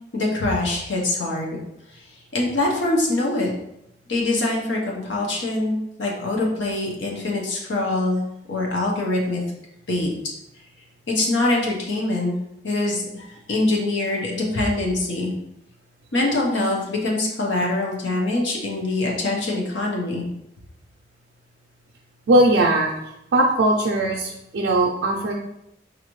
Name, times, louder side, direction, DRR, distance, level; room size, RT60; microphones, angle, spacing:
voice 1, 0.1-1.6 1.9-2.0 2.3-3.5 4.1-8.2 8.5-9.4 9.9-10.1 11.1-12.3 12.6-15.3 16.1-20.3, left 2 dB, 90° left, -2 dB, 0.9 m, -24 dB
voice 2, 22.3-22.9 23.3-25.3, right 1 dB, 75° right, -1 dB, 0.4 m, -19 dB
4.8 x 2.6 x 3.0 m, 0.83 s
head